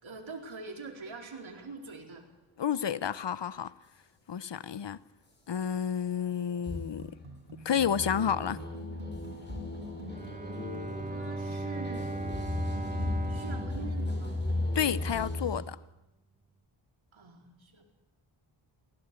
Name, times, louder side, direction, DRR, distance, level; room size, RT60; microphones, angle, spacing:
voice 1, 0.0-2.3 11.0-12.2 13.3-14.3 17.1-17.9, right 4 dB, 65° right, 4.5 m, -44 dB
voice 2, 2.6-3.7 4.3-5.0 5.5-7.1 7.6-8.6 14.7-15.8, left 8 dB, 55° left, 0.9 m, -30 dB
sound 1, 6.6-15.7, left 2 dB, 20° left, 6.0 m, -36 dB
sound 2, 6.7-15.2, equal, 85° right, 5.2 m, -47 dB
Bowed string instrument, 10.0-15.0, right 2 dB, 15° right, 1.4 m, -38 dB
23.0 x 17.5 x 8.5 m
wide cardioid pair, 80°, 50 cm